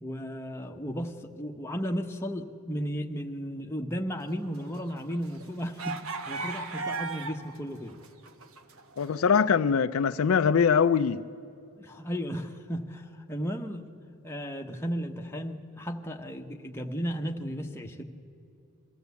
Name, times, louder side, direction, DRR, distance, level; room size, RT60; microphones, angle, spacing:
voice 1, 0.0-6.0 6.3-7.9 11.8-13.9 14.2-18.0, equal, 10° left, 1.0 m, -34 dB
sound 1, 4.4-7.6 7.9-9.2, right 4 dB, 65° right, 1.2 m, -36 dB
voice 2, 9.0-11.2, left 6 dB, 65° left, 0.4 m, -23 dB
22.0 x 14.5 x 8.2 m
head